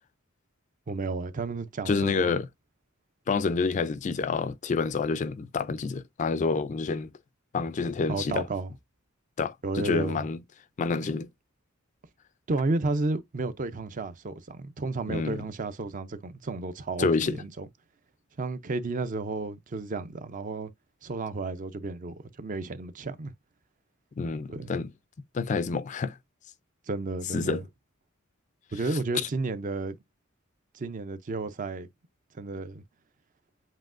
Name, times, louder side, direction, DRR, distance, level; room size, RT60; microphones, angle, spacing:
voice 1, 0.9-2.3 8.1-8.7 9.6-10.3 12.5-17.7 18.4-20.7 21.0-23.3 24.5-24.7 26.9-27.6 28.7-30.0 30.7-31.9 32.3-32.8, right 3 dB, 40° right, 0.5 m, -32 dB
voice 2, 1.9-2.5 3.3-7.1 7.5-8.4 9.4-10.4 10.8-11.3 15.1-15.4 17.0-17.4 24.2-24.9 25.3-26.2 27.3-27.6, left 4 dB, 35° left, 0.3 m, -28 dB
7.5 x 2.7 x 2.5 m
head